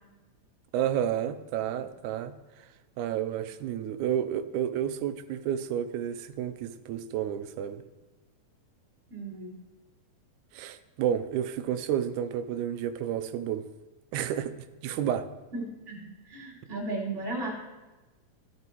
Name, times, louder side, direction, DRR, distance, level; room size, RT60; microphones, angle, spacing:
voice 1, 0.7-2.3 3.0-7.8 10.5-13.6 14.1-14.5 14.8-15.3, right 10 dB, 80° right, 10 dB, 2.0 m, -30 dB
voice 2, 9.1-9.6 15.5-17.5, right 2 dB, 20° right, -5 dB, 3.4 m, -35 dB
13.5 x 13.0 x 3.0 m, 1.2 s
omnidirectional pair, 3.6 m